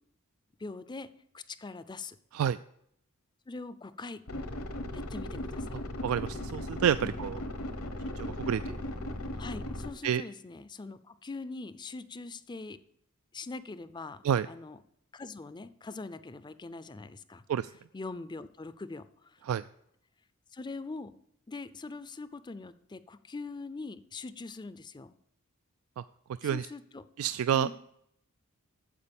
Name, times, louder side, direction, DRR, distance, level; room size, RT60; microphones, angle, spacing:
voice 1, 0.6-1.1 1.3-2.2 3.5-4.2 4.9-5.8 7.0-7.1 9.4-12.8 13.3-14.8 15.1-17.4 17.9-19.3 20.5-21.2 21.5-25.1 26.4-27.0 27.5-27.7, left 3 dB, 20° left, 14 dB, 0.5 m, -42 dB
sound 1, 4.3-9.9, left 1 dB, 75° left, 1.2 m, -37 dB
voice 2, 6.0-7.4 8.2-8.7 10.0-10.2 14.2-14.5 17.5-17.7 19.5-19.6 26.4-26.7 27.2-27.7, right 8 dB, 70° right, 14 dB, 0.3 m, -28 dB
9.8 x 7.4 x 7.0 m, 0.74 s
head